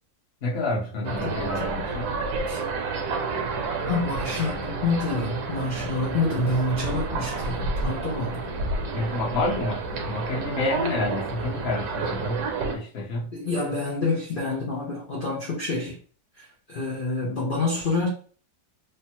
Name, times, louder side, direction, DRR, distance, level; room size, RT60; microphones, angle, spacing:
voice 1, 0.4-2.2 8.9-12.5 12.7-13.3, left 2 dB, 45° left, 1.0 m, -29 dB
voice 2, 1.0-1.9 2.5-2.6 3.8-8.5 13.3-16.0 16.4-18.1, left 2 dB, 70° left, 0.5 m, -28 dB
sound 1, 1.0-12.7, right 3 dB, 70° right, 1.1 m, -30 dB
3.3 x 2.1 x 2.9 m
omnidirectional pair, 1.8 m